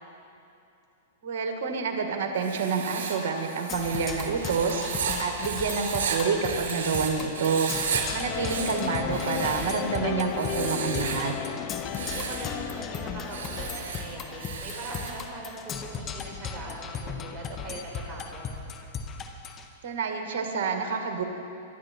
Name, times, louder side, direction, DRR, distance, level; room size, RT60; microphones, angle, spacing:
voice 1, 1.2-7.7 8.1-11.3 19.8-21.2, right 5 dB, 60° right, 4 dB, 1.9 m, -28 dB
Writing, 2.4-7.1 7.3-8.0 8.3-9.9 10.3-11.3 11.8-12.5 13.2-15.2, right 6 dB, 80° right, 3.6 m, -34 dB
Percussion, 3.7-19.7, left 5 dB, 25° left, 1.2 m, -37 dB
voice 2, 7.9-8.4 11.5-18.4, right 1 dB, 20° right, -3 dB, 4.7 m, -41 dB
sound 1, 8.2-14.5, left 12 dB, 40° left, 0.5 m, -35 dB
24.5 x 11.5 x 4.5 m, 2.7 s
hypercardioid pair, 130°, 0 cm